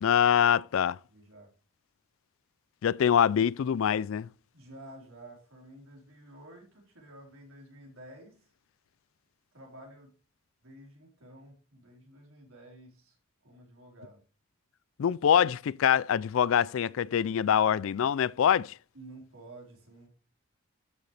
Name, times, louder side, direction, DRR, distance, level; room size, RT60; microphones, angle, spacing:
voice 1, 0.0-1.0 2.8-4.3 15.0-18.7, left 8 dB, 70° left, 0.3 m, -24 dB
voice 2, 1.1-1.5 4.5-8.4 9.5-10.1 10.6-13.2 13.4-14.2 18.9-20.1, right 1 dB, 75° right, 4.3 m, -51 dB
12.5 x 6.6 x 3.3 m
head